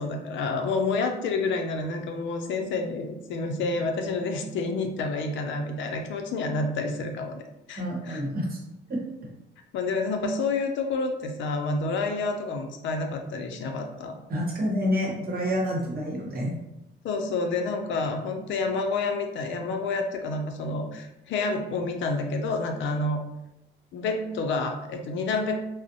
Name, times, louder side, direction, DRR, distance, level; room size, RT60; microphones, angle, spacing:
voice 1, 0.0-8.2 9.7-14.2 17.0-23.2 23.9-25.6, left 3 dB, 70° left, 4 dB, 0.4 m, -29 dB
voice 2, 7.8-8.6 8.9-9.0 14.3-16.5, equal, 50° right, -2 dB, 0.9 m, -28 dB
2.4 x 2.0 x 2.6 m, 0.88 s
cardioid pair, 90°, 20 cm